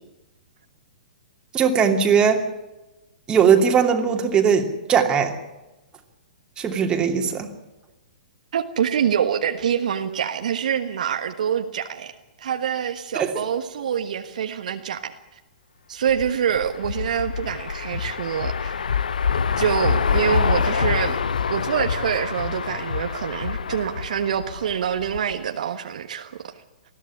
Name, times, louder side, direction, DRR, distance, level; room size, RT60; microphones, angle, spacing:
voice 1, 1.5-2.4 3.3-5.3 6.6-7.5 13.1-13.4, right 7 dB, 20° right, 4 dB, 2.9 m, -19 dB
voice 2, 8.5-15.1 15.9-18.9 19.6-21.2 21.5-26.6, right 8 dB, 60° right, 7 dB, 1.4 m, -25 dB
sound 1, 16.1-25.3, left 6 dB, 70° left, 0.8 m, -26 dB
20.5 x 15.0 x 9.8 m, 1.0 s
figure-of-eight pair, 115°, 5 cm